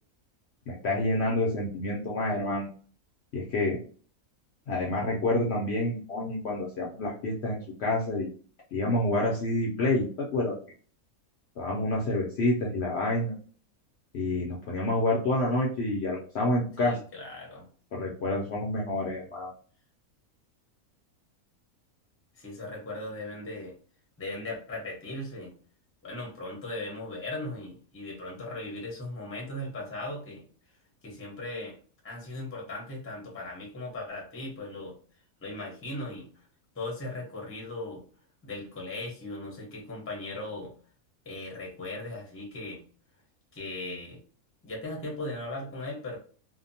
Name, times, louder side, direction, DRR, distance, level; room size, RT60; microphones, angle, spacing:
voice 1, 0.7-2.7 3.3-3.8 4.7-8.3 8.7-10.6 11.6-13.3 14.1-17.0 17.9-19.5, left 2 dB, 65° left, -2 dB, 0.7 m, -28 dB
voice 2, 16.8-17.7 22.4-23.7 24.2-25.5 26.0-30.4 31.0-31.8 32.0-34.9 35.4-36.3 36.7-38.0 38.4-40.7 41.2-42.8 43.5-44.2 44.6-46.2, left 2 dB, 15° left, -2 dB, 0.5 m, -38 dB
2.7 x 2.0 x 2.6 m, 0.42 s
omnidirectional pair, 1.5 m